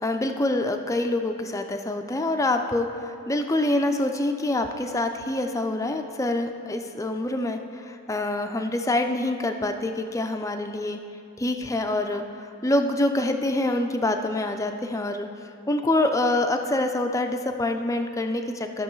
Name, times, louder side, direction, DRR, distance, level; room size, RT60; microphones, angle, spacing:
voice 1, 0.0-11.0 11.4-15.3 15.7-18.8, left 2 dB, 15° left, 5 dB, 0.4 m, -26 dB
14.0 x 6.1 x 3.1 m, 2.5 s
head